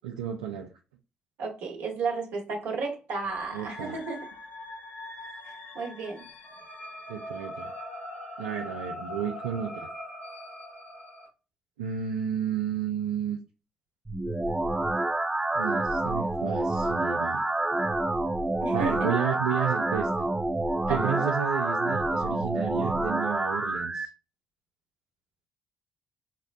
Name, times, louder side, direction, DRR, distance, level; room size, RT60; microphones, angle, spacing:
voice 1, 0.0-0.7 3.5-4.0 7.1-7.7 8.4-9.9 11.8-13.4 15.5-17.4 17.7-17.8 18.5-20.3 20.9-24.1, right 9 dB, 85° right, 0.4 m, -32 dB
voice 2, 1.4-4.3 5.5-6.2 18.6-19.1 20.9-21.3, right 4 dB, 70° right, 1.1 m, -33 dB
sound 1, 3.1-11.3, left 1 dB, 65° left, 1.5 m, -41 dB
sound 2, 14.1-24.1, right 2 dB, 15° right, 0.5 m, -28 dB
5.1 x 2.1 x 2.5 m
hypercardioid pair, 45°, 4 cm